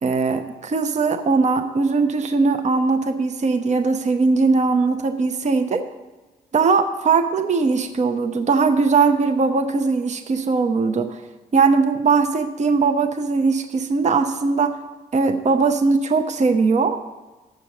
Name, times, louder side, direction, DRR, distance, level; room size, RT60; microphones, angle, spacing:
voice 1, 0.0-5.9 6.5-11.2 11.5-14.8 15.1-17.0, right 4 dB, 40° right, 7 dB, 0.7 m, -20 dB
6.6 x 6.5 x 7.3 m, 1.2 s
hypercardioid pair, 40°, 18 cm